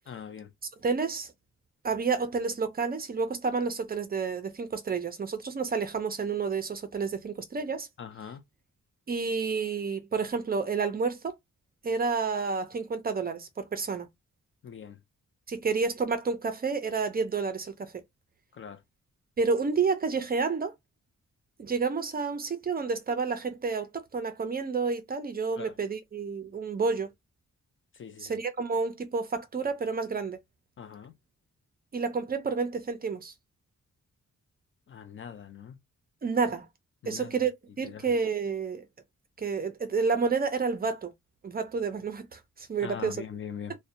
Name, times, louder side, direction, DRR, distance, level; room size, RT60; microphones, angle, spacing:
voice 1, 0.1-0.5 8.0-8.4 14.6-15.0 18.5-18.8 25.6-25.8 27.9-28.4 30.8-31.1 34.9-35.8 37.0-37.3 37.8-38.0 42.8-43.8, left 7 dB, 45° left, 0.4 m, -42 dB
voice 2, 0.8-1.3 1.8-7.9 9.1-11.3 11.8-14.1 15.5-18.0 19.4-20.7 21.6-27.1 28.2-30.4 31.9-33.3 36.2-36.7 37.1-37.5 37.8-38.8 39.4-41.1 41.4-43.2, right 5 dB, 30° right, 0.4 m, -30 dB
2.6 x 2.1 x 2.5 m
wide cardioid pair, 180°, 30 cm